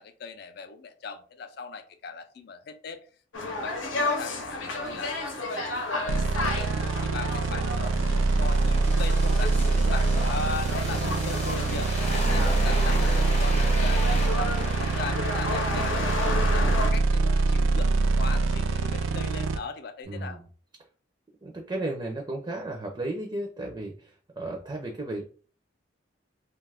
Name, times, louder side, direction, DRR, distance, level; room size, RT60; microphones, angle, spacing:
voice 1, 0.0-3.0 3.4-6.7 7.0-17.9 18.2-20.4, left 4 dB, 55° left, 8 dB, 0.4 m, -39 dB
sound 1, 3.3-16.9, left 2 dB, 80° left, 0.8 m, -33 dB
sound 2, 6.1-19.6, right 3 dB, 85° right, 0.4 m, -24 dB
sound 3, 7.7-16.0 16.4-16.5, left 1 dB, 35° left, 0.8 m, -36 dB
voice 2, 10.9-11.4 20.1-20.5 21.4-25.3, right 2 dB, 20° right, 1 dB, 0.4 m, -34 dB
2.5 x 2.3 x 3.3 m, 0.42 s
head